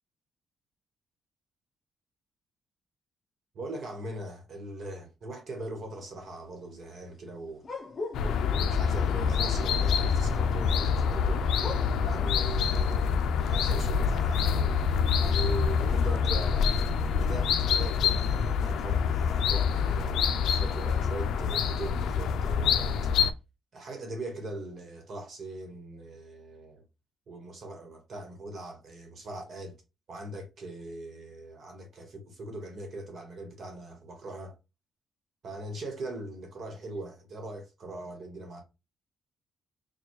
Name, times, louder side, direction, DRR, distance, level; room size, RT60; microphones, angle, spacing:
voice 1, 3.5-7.6 8.5-11.4 12.0-14.7 15.2-23.0 23.7-26.8 27.3-29.7 30.1-34.5 35.4-38.6, right 2 dB, 45° right, 1.1 m, -40 dB
sound 1, 7.6-8.8 11.6-12.1, left 3 dB, 30° left, 0.7 m, -38 dB
sound 2, 8.1-23.3, left 6 dB, 80° left, 0.4 m, -26 dB
4.4 x 2.2 x 3.0 m
cardioid pair, 160°, 0 cm